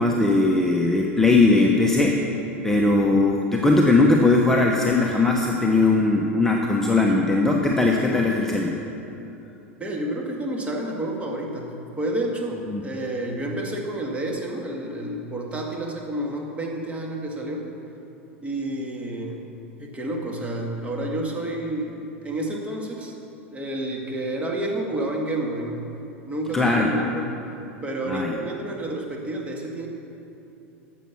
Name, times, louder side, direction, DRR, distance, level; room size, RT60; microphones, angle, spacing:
voice 1, 0.0-2.2 2.6-8.8 12.7-12.9 26.5-26.9 28.1-28.4, left 2 dB, 5° left, -1 dB, 1.0 m, -19 dB
voice 2, 9.8-17.7 18.4-19.4 19.8-23.1 23.5-25.8 26.3-27.4 27.8-29.9, right 1 dB, 15° right, 0 dB, 2.0 m, -29 dB
13.0 x 7.5 x 5.9 m, 2.9 s
hypercardioid pair, 90°, 7 cm